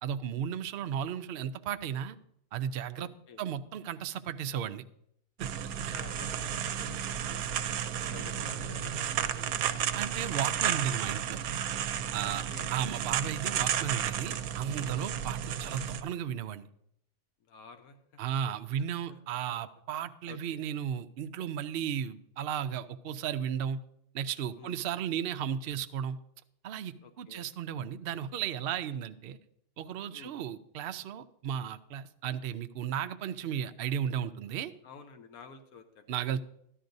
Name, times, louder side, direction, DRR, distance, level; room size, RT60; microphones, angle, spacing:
voice 1, 0.0-2.2 2.5-3.1 3.4-4.8 5.4-5.5 5.9-6.0 9.9-11.4 12.1-12.4 12.7-16.7 18.2-23.8 24.1-26.2 26.6-29.4 29.8-34.7 36.1-36.4, right 9 dB, 70° right, 9 dB, 0.5 m, -34 dB
voice 2, 2.9-3.4 5.7-7.8 8.1-9.9 12.2-12.7 14.9-15.1 17.4-18.2 18.7-19.2 20.3-20.6 24.5-24.8 27.0-27.5 30.1-30.4 34.8-36.2, left 5 dB, 80° left, 7 dB, 1.4 m, -52 dB
sound 1, 5.4-16.0, right 9 dB, 90° right, 1.1 m, -33 dB
13.0 x 11.0 x 2.6 m, 0.72 s
omnidirectional pair, 1.5 m